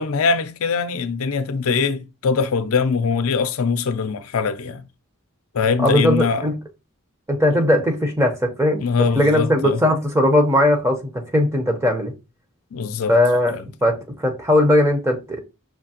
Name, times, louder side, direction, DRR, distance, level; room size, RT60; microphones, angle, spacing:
voice 1, 0.0-4.8 5.5-6.4 7.5-7.6 8.8-9.8 12.7-13.1 13.5-13.6, left 5 dB, 70° left, 0.5 m, -22 dB
voice 2, 5.8-6.5 7.3-8.9 9.1-12.1 13.1-15.4, left 1 dB, 15° right, 0.7 m, -19 dB
5.7 x 2.8 x 2.8 m
head